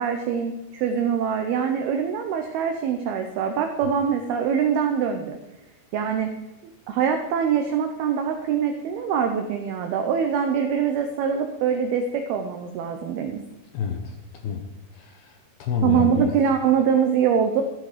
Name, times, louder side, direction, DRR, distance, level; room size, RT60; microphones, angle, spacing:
voice 1, 0.0-5.4 5.9-6.3 6.9-13.4 15.8-17.6, right 7 dB, 80° right, 5 dB, 2.2 m, -23 dB
voice 2, 13.7-14.2 14.4-14.6 14.9-16.3, left 7 dB, 75° left, 4 dB, 2.5 m, -28 dB
13.5 x 12.5 x 5.0 m, 1.0 s
omnidirectional pair, 5.6 m